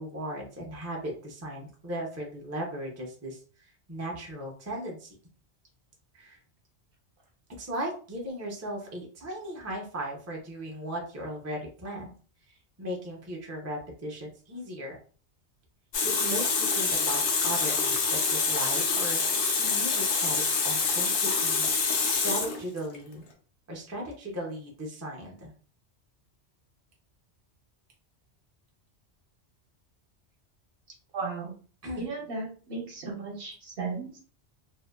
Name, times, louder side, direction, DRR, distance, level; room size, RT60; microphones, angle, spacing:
voice 1, 0.0-5.1 6.1-6.4 7.6-12.1 12.8-15.0 16.0-19.2 19.6-21.7 22.0-23.2 23.7-25.5 31.8-32.1, right 1 dB, 25° right, -1 dB, 0.4 m, -37 dB
Water tap faucet, 15.9-23.0, left 4 dB, 75° left, 0.9 m, -26 dB
voice 2, 31.1-31.5 31.9-34.2, right 4 dB, 60° right, 0 dB, 0.9 m, -35 dB
2.7 x 2.1 x 2.2 m, 0.41 s
omnidirectional pair, 1.2 m